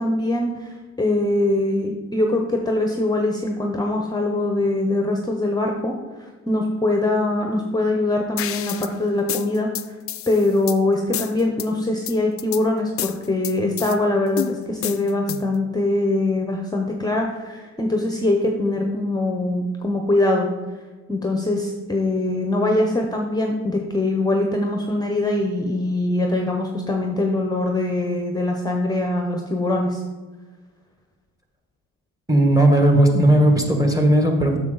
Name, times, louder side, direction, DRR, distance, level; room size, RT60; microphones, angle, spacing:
voice 1, 0.0-6.0 6.5-9.9 10.3-20.5 21.1-30.0, left 2 dB, 15° left, 2 dB, 0.7 m, -22 dB
sound 1, 8.4-8.9 9.3-10.8 11.1-11.7 12.1-12.6 13.0-14.0 14.4-15.6, left 11 dB, 50° left, 0.4 m, -30 dB
voice 2, 32.3-34.6, right 1 dB, 10° right, 3 dB, 1.4 m, -16 dB
7.3 x 6.5 x 3.9 m, 1.4 s
cardioid pair, 90°, 30 cm